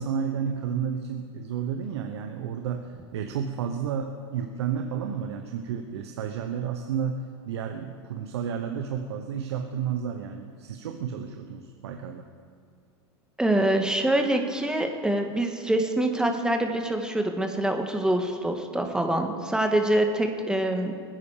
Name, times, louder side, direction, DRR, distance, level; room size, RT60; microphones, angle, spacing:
voice 1, 0.0-12.3, right 7 dB, 80° right, 5 dB, 1.0 m, -31 dB
voice 2, 13.4-20.9, right 1 dB, 5° right, 4 dB, 1.7 m, -25 dB
21.0 x 9.7 x 5.0 m, 2.2 s
hypercardioid pair, 95°, 14 cm